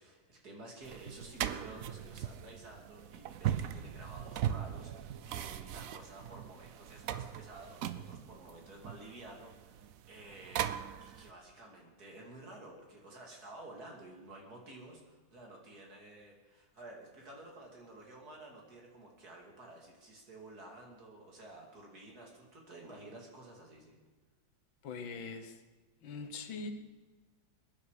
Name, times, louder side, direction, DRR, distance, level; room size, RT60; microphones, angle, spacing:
voice 1, 0.0-10.7 11.0-24.0, right 2 dB, 50° right, 0 dB, 3.2 m, -52 dB
sound 1, 0.8-11.3, right 10 dB, 70° right, 0.8 m, -39 dB
voice 2, 24.8-25.6 26.0-26.7, left 4 dB, 80° left, 7 dB, 2.0 m, -42 dB
22.0 x 10.5 x 4.9 m, 1.3 s
omnidirectional pair, 2.1 m